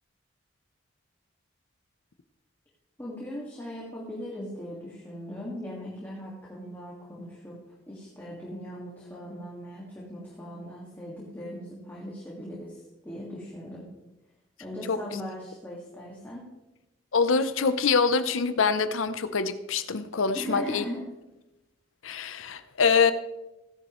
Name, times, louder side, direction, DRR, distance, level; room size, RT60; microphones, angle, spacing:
voice 1, 3.0-7.6 7.9-13.9 14.6-16.4 20.3-21.0, equal, 10° left, 2.0 m, -39 dB
voice 2, 14.9-15.2 17.1-20.8 22.0-23.1, left 5 dB, 90° left, 0.7 m, -25 dB
16.5 x 10.5 x 3.1 m
head